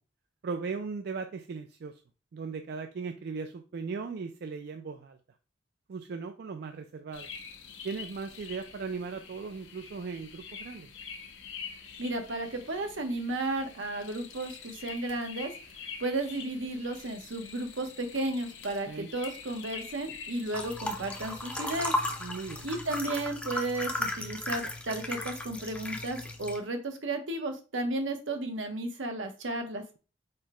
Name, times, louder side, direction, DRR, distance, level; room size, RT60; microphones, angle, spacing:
voice 1, 0.4-1.9 2.3-5.2 5.9-7.3 7.8-10.9 18.9-19.1 22.2-22.7, right 5 dB, 60° right, 7 dB, 0.4 m, -38 dB
sound 1, 7.1-23.0, left 6 dB, 75° left, 0.8 m, -46 dB
voice 2, 12.0-15.5 16.0-21.9 22.6-29.8, right 2 dB, 85° right, 5 dB, 0.9 m, -33 dB
sound 2, 20.5-26.6, left 1 dB, 5° left, 0.5 m, -35 dB
4.4 x 2.2 x 4.7 m, 0.34 s
head